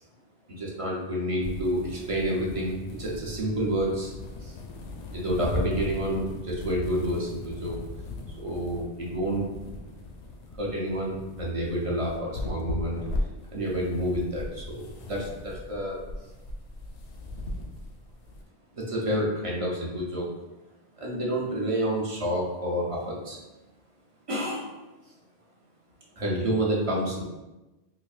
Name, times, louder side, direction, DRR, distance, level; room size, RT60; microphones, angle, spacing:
voice 1, 0.5-4.1 4.4-4.5 5.1-7.8 8.4-9.5 10.5-13.0 13.5-16.0 18.7-20.3 21.0-23.4 24.3-24.7 26.2-27.2, equal, 35° right, -3 dB, 0.6 m, -29 dB
sound 1, 1.4-18.4, left 2 dB, 85° left, 0.9 m, -38 dB
4.2 x 2.6 x 2.4 m, 1.1 s
omnidirectional pair, 1.2 m